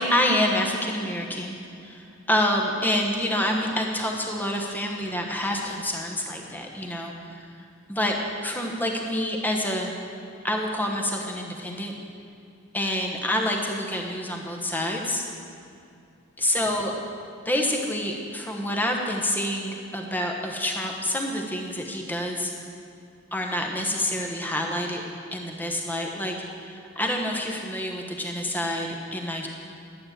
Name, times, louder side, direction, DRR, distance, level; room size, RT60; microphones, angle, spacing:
voice 1, 0.0-1.5 1.8-7.5 7.9-8.1 8.4-9.9 10.4-11.9 12.7-15.2 16.4-16.9 17.4-22.5 23.3-25.0 25.3-29.5, left 1 dB, 10° left, 1 dB, 1.1 m, -27 dB
12.0 x 8.5 x 7.4 m, 2.5 s
head